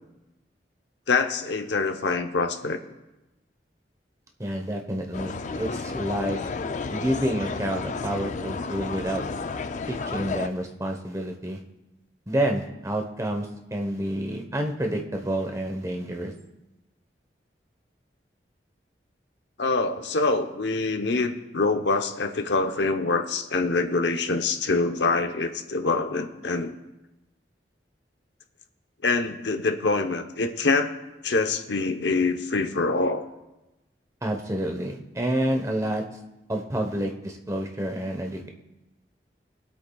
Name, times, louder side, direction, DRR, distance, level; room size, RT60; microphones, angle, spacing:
voice 1, 1.1-2.8 19.6-26.7 29.0-30.9 31.2-33.2, left 3 dB, 85° left, 6 dB, 0.9 m, -25 dB
voice 2, 4.4-6.4 6.9-9.2 9.9-11.6 12.3-13.5 13.7-16.3 34.2-36.0 36.5-38.5, right 1 dB, 20° right, 3 dB, 1.0 m, -28 dB
sound 1, 5.1-10.5, left 4 dB, 45° left, 0.4 m, -32 dB
22.0 x 8.4 x 2.3 m, 1.0 s
head